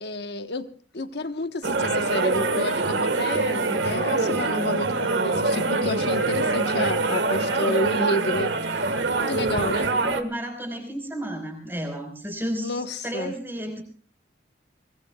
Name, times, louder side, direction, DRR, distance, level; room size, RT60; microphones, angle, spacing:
voice 1, 0.0-0.7 0.9-8.5 9.2-9.9 12.6-13.3, left 1 dB, 60° left, 8 dB, 1.2 m, -30 dB
sound 1, 1.6-10.2, right 3 dB, 70° right, 1.6 m, -24 dB
voice 2, 9.8-13.8, right 1 dB, 10° right, 4 dB, 4.8 m, -32 dB
24.5 x 20.5 x 2.4 m, 0.42 s
head